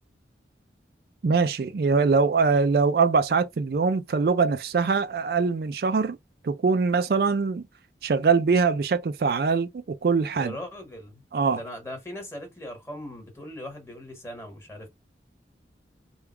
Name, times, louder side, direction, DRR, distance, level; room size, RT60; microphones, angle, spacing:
voice 1, 1.2-6.2 6.4-7.6 8.0-10.5 11.3-11.6, right 4 dB, 55° right, 0.4 m, -23 dB
voice 2, 10.3-11.2 11.5-14.9, left 1 dB, 15° left, 1.4 m, -39 dB
3.4 x 2.3 x 4.4 m
head